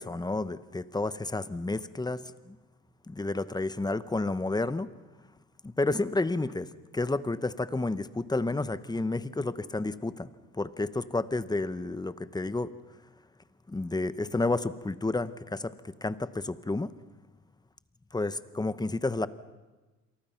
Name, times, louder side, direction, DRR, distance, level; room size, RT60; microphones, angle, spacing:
voice 1, 0.0-2.6 3.1-4.9 5.6-6.7 6.9-10.3 10.6-12.7 13.7-15.7 16.0-16.9 18.1-19.3, left 2 dB, 15° left, 14 dB, 1.0 m, -30 dB
28.5 x 23.5 x 5.8 m, 1.2 s
cardioid pair, 90°, 30 cm